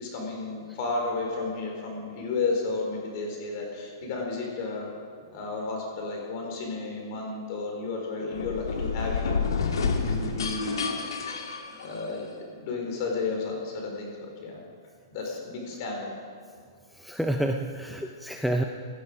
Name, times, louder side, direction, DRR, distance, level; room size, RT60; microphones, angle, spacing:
voice 1, 0.0-4.9 5.3-9.4 10.0-10.8 11.8-14.6 15.1-16.2, left 3 dB, 40° left, 0 dB, 4.0 m, -32 dB
sound 1, 8.3-12.3, left 5 dB, 90° left, 1.8 m, -29 dB
voice 2, 16.9-18.6, right 1 dB, ahead, 3 dB, 0.5 m, -28 dB
16.5 x 11.5 x 5.0 m, 2.1 s
hypercardioid pair, 155°, 2 cm